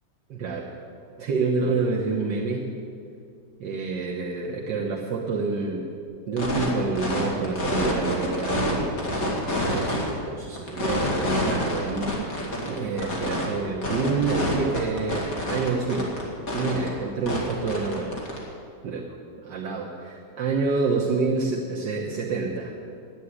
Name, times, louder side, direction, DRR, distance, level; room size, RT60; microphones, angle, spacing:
voice 1, 0.3-0.7 1.2-2.7 3.6-5.9 6.3-9.0 9.7-12.1 12.7-16.2 16.5-18.2 18.8-22.7, right 4 dB, 75° right, -3 dB, 1.7 m, -28 dB
sound 1, 6.4-6.7 6.9-8.7 9.0-10.1 10.6-13.4 13.8-16.2 16.5-16.9 17.2-18.4, left 1 dB, 50° left, 2.8 m, -27 dB
10.0 x 8.9 x 9.6 m, 2.5 s
omnidirectional pair, 1.9 m